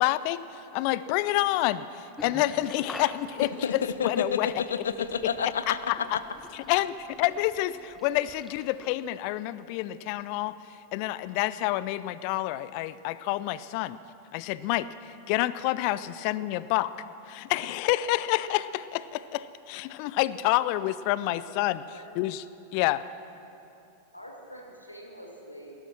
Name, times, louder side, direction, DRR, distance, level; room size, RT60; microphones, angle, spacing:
voice 1, 0.0-4.5 5.7-6.2 6.7-10.5 10.9-14.0 14.3-16.9 17.3-21.8 22.2-22.4 22.7-23.0, left 16 dB, 45° left, 17 dB, 0.4 m, -28 dB
sound 1, 2.2-9.0, left 1 dB, 5° left, 0.8 m, -48 dB
voice 2, 3.6-6.1, left 6 dB, 65° left, 12 dB, 0.8 m, -29 dB
voice 3, 21.3-22.2 24.1-25.8, equal, 85° left, -1 dB, 2.4 m, -46 dB
19.5 x 11.5 x 6.2 m, 2.8 s
figure-of-eight pair, 90°, 0 cm